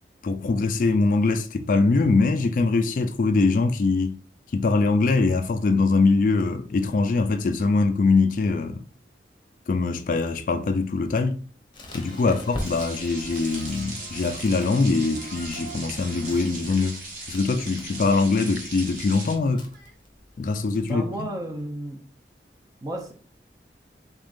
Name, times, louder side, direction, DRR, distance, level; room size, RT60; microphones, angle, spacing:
voice 1, 0.2-4.2 4.5-8.8 9.7-11.4 11.9-17.0 17.3-19.7 20.4-21.3, left 3 dB, 45° left, 0.3 m, -22 dB
Crackle, 11.7-20.9, left 1 dB, 25° left, 0.8 m, -43 dB
sound 1, 11.9-17.3 17.6-19.9, right 2 dB, 70° right, 1.7 m, -47 dB
sound 2, 12.6-19.3, right 2 dB, 45° right, 1.2 m, -38 dB
voice 2, 20.9-22.0 22.8-23.1, right 1 dB, 20° right, 0.6 m, -33 dB
3.6 x 3.5 x 2.5 m
head